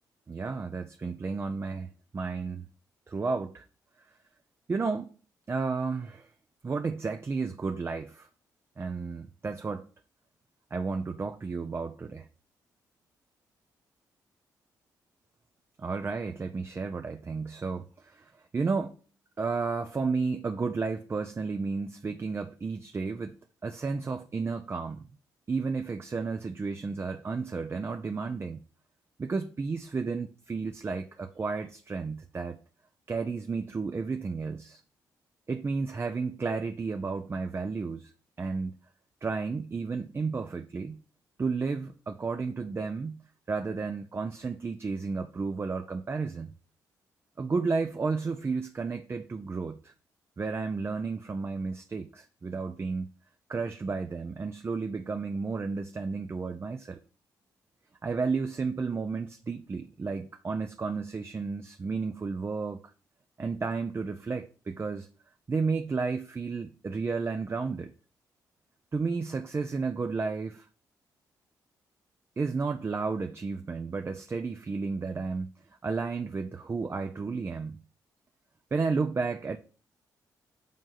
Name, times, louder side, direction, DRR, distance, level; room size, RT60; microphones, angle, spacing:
voice 1, 0.3-2.7 3.1-3.6 4.7-5.1 5.5-6.3 6.6-8.3 8.8-9.9 10.7-12.3 15.8-18.2 18.5-18.9 19.4-23.4 23.6-25.0 25.5-28.6 29.2-32.6 33.1-34.8 35.5-38.1 38.4-38.8 39.2-41.0 41.4-46.5 47.4-49.9 50.4-53.1 53.5-57.0 58.0-62.8 63.4-65.1 65.5-67.9 68.9-70.7 72.4-75.5 75.8-77.8 78.7-79.6, right 4 dB, 35° right, 0.6 m, -32 dB
5.3 x 3.7 x 5.7 m
supercardioid pair, 60°, 8 cm